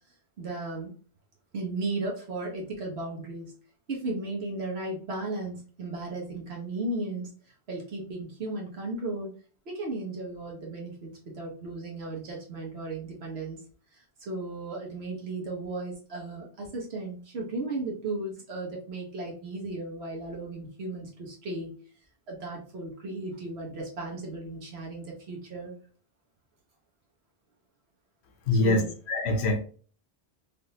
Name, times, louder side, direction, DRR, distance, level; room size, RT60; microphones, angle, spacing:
voice 1, 0.4-0.9 1.5-3.5 3.9-7.3 7.7-9.3 9.7-13.6 13.9-21.8 22.3-25.7 28.6-28.9, right 2 dB, 75° right, -1 dB, 1.2 m, -35 dB
voice 2, 28.5-29.6, left 2 dB, 90° left, 5 dB, 1.0 m, -24 dB
3.5 x 2.5 x 2.7 m, 0.41 s
omnidirectional pair, 1.1 m